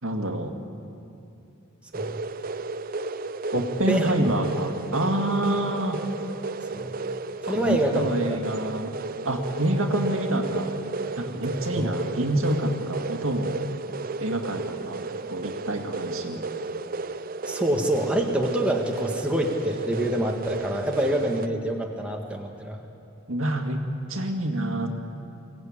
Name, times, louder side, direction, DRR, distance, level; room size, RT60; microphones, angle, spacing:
voice 1, 0.0-0.6 3.5-6.1 7.5-8.9 9.2-10.8 11.2-13.6 14.2-16.4 23.3-23.8 24.1-24.9, right 1 dB, 80° right, 4 dB, 2.1 m, -27 dB
sound 1, 1.9-21.5, right 3 dB, 45° right, 0.5 m, -33 dB
voice 2, 3.5-4.3 6.7-6.9 7.5-8.1 11.8-11.9 17.4-22.8, right 1 dB, 5° right, 0 dB, 1.7 m, -26 dB
23.5 x 17.5 x 8.8 m, 2.6 s
head